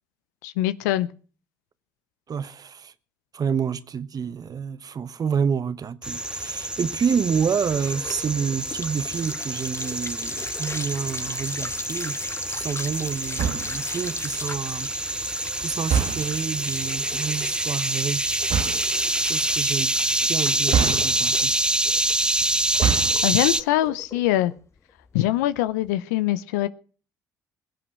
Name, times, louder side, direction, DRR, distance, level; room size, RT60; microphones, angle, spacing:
voice 1, 0.4-1.1 23.2-24.5 25.1-26.7, left 14 dB, 85° left, 0.7 m, -23 dB
voice 2, 2.3-2.9 3.3-14.9 15.6-18.2 19.2-21.5, right 6 dB, 45° right, 1.2 m, -28 dB
sound 1, 6.0-23.6, right 1 dB, 10° right, 0.8 m, -26 dB
sound 2, 7.1-25.9, left 4 dB, 30° left, 1.1 m, -39 dB
sound 3, 13.3-13.9 15.8-16.5 18.4-18.9 20.7-21.5 22.6-23.3, right 7 dB, 60° right, 1.4 m, -26 dB
22.0 x 7.8 x 6.2 m
hypercardioid pair, 55°, 9 cm